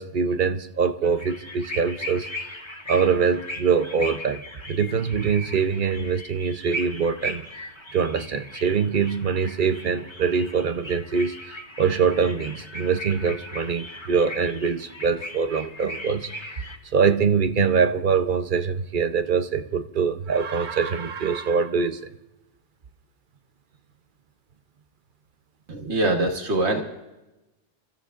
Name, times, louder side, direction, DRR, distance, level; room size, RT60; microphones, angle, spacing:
voice 1, 0.0-2.3 2.9-4.4 4.7-16.3 16.9-22.0, right 6 dB, 50° right, 9 dB, 0.9 m, -24 dB
sound 1, 1.0-16.8, equal, 25° left, 1.7 m, -38 dB
voice 2, 25.7-26.8, right 2 dB, 75° right, 3 dB, 1.7 m, -23 dB
29.5 x 14.0 x 2.5 m, 1.0 s
omnidirectional pair, 1.1 m